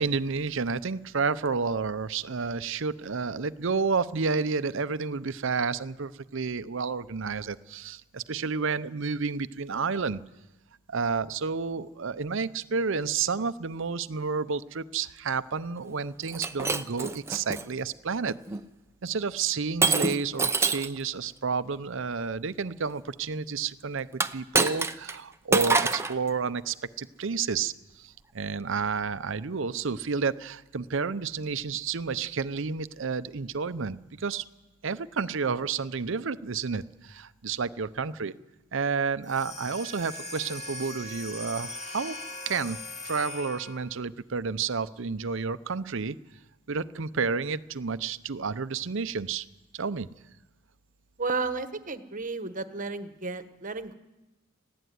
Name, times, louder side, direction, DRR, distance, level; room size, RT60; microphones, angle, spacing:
voice 1, 0.0-10.2 10.9-18.3 19.0-24.1 24.3-34.4 34.8-38.3 38.7-42.2 42.5-46.2 46.7-49.4 49.7-50.1, right 5 dB, 65° right, 14 dB, 0.7 m, -30 dB
Shatter, 16.3-17.6 18.3-18.6 19.8-21.0 24.1-25.2 25.5-26.2, right 3 dB, 15° right, 0.7 m, -26 dB
sound 1, 39.2-44.0, left 2 dB, 35° left, 2.2 m, -40 dB
voice 2, 51.2-53.9, right 3 dB, 40° right, 10 dB, 1.2 m, -33 dB
19.5 x 15.0 x 9.4 m, 1.1 s
head